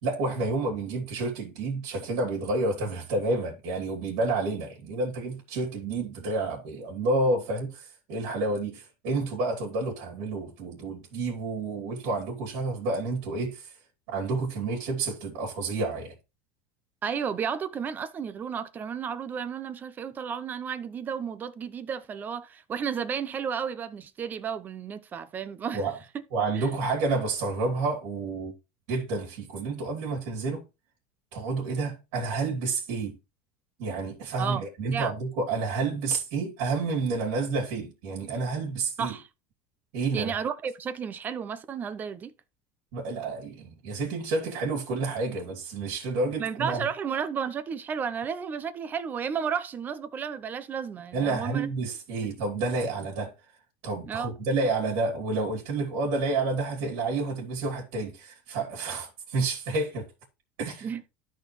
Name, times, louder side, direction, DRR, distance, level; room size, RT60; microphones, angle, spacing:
voice 1, 0.0-13.7 14.1-16.1 25.7-26.0 26.3-28.5 28.9-30.6 31.3-33.2 33.8-39.1 39.9-40.3 42.9-46.8 51.1-53.3 53.8-60.1 60.6-60.9, right 3 dB, 75° right, 3.0 m, -29 dB
voice 2, 17.0-25.8 26.5-26.7 34.4-34.6 34.9-35.1 39.0-39.2 40.1-42.3 46.4-51.7 54.1-54.3 60.8-61.0, right 7 dB, 30° right, 0.7 m, -32 dB
13.0 x 4.5 x 3.2 m
supercardioid pair, 120°, 6 cm